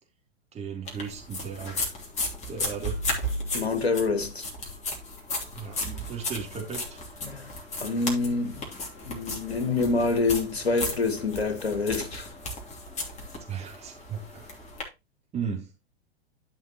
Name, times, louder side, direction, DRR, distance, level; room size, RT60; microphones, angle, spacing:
voice 1, 0.5-1.9 2.5-3.0 5.5-7.0 13.5-14.6 15.3-15.7, right 6 dB, 20° right, 2.8 m, -36 dB
sound 1, 0.9-14.8, left 1 dB, 20° left, 2.9 m, -35 dB
voice 2, 3.5-4.5 7.2-7.5 7.8-8.7 9.0-12.3, left 3 dB, 85° left, 1.6 m, -27 dB
12.0 x 5.7 x 2.9 m
figure-of-eight pair, 105°, 31 cm